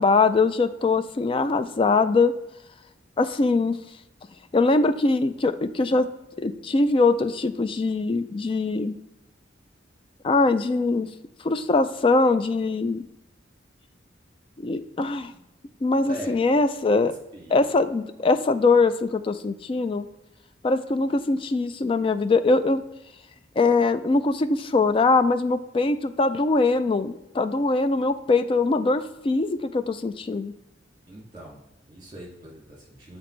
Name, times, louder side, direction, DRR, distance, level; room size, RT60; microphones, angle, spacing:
voice 1, 0.0-2.4 3.2-3.8 4.5-6.1 6.4-9.0 10.2-11.1 11.4-13.0 14.6-15.3 15.8-17.1 17.5-20.1 20.6-22.8 23.6-30.5, left 3 dB, 30° left, 11 dB, 0.3 m, -22 dB
voice 2, 16.0-16.6 17.0-17.7 31.1-33.2, right 1 dB, 25° right, -4 dB, 2.3 m, -42 dB
7.8 x 4.1 x 3.2 m, 0.92 s
head